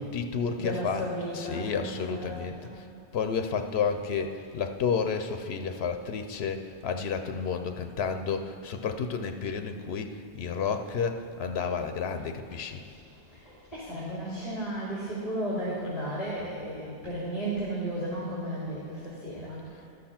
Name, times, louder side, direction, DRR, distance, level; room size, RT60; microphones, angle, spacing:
voice 1, 0.0-2.9 3.1-12.8, left 6 dB, 85° left, 7 dB, 0.9 m, -31 dB
voice 2, 0.5-2.8 13.3-19.7, right 1 dB, 40° left, -8 dB, 2.4 m, -34 dB
12.5 x 6.6 x 5.8 m, 2.6 s
omnidirectional pair, 1.0 m